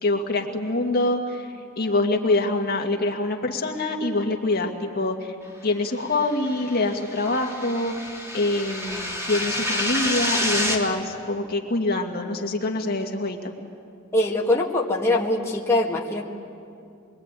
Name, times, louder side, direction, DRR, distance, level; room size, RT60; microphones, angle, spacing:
voice 1, 0.0-5.4 5.6-13.5, left 2 dB, 50° left, 2 dB, 2.0 m, -25 dB
sound 1, 6.3-10.8, left 1 dB, 15° right, 3.0 m, -28 dB
voice 2, 14.1-16.3, left 1 dB, 15° left, -3 dB, 2.0 m, -22 dB
27.0 x 23.0 x 9.1 m, 2.4 s
head